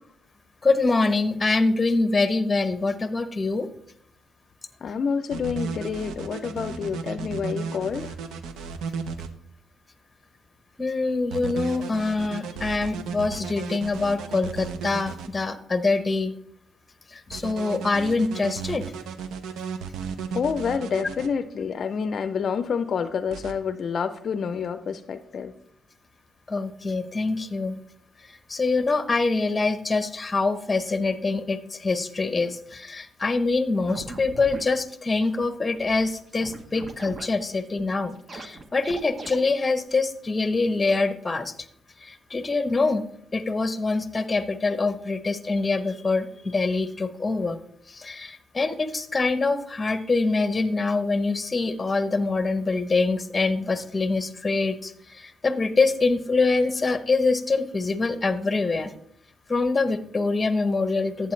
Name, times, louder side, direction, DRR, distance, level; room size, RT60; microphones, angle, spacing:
voice 1, 0.6-3.7 10.8-16.3 17.1-18.8 26.5-27.8 28.5-41.5 42.0-43.0 43.3-47.6 47.9-58.9 59.5-61.3, left 3 dB, 25° left, 12 dB, 0.8 m, -25 dB
voice 2, 4.8-8.1 20.3-25.5, left 6 dB, 55° left, 11 dB, 0.5 m, -28 dB
sound 1, 5.3-9.3 11.3-15.3 17.3-21.3 23.3-23.5, right 6 dB, 80° right, 0.7 m, -34 dB
sound 2, 33.9-34.6 35.2-35.3 35.5-35.6 35.7-36.1 36.4-37.3 37.6-37.8 38.2-39.4, right 2 dB, 35° right, 1.0 m, -40 dB
11.5 x 8.3 x 3.2 m, 0.68 s
cardioid pair, 90°, 0 cm